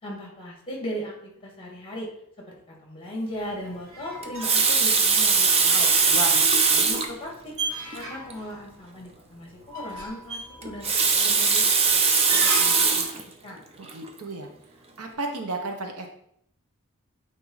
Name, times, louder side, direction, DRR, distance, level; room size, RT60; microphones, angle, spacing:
voice 1, 0.0-2.1 2.4-6.4 6.7-7.5 7.9-12.0 12.3-13.1 13.4-13.6, equal, 25° left, -1 dB, 1.8 m, -38 dB
sound 1, 3.3-13.0, right 2 dB, 65° right, 1.4 m, -38 dB
Water tap faucet, 4.2-7.1 7.9-8.0 8.3-8.4 10.6-13.2 13.9-14.1, right 5 dB, 25° right, 0.6 m, -20 dB
voice 2, 13.8-14.5 15.0-16.1, right 3 dB, 90° right, 3 dB, 1.0 m, -32 dB
8.6 x 2.9 x 4.0 m, 0.69 s
head